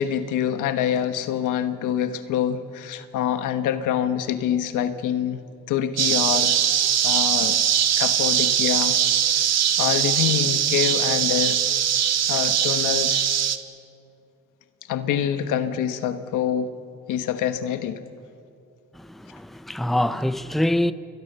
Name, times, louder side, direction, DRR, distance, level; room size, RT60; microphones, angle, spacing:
voice 1, 0.0-5.4 5.7-6.6 7.0-7.6 8.0-9.0 9.3-9.4 9.8-11.6 12.3-13.3 14.9-16.7 17.1-18.0, left 9 dB, 90° left, 1.4 m, -25 dB
sound 1, 6.0-13.6, right 9 dB, 60° right, 1.4 m, -21 dB
voice 2, 18.9-20.9, left 1 dB, ahead, 0.7 m, -24 dB
28.5 x 23.0 x 6.8 m
cardioid pair, 90°, 30 cm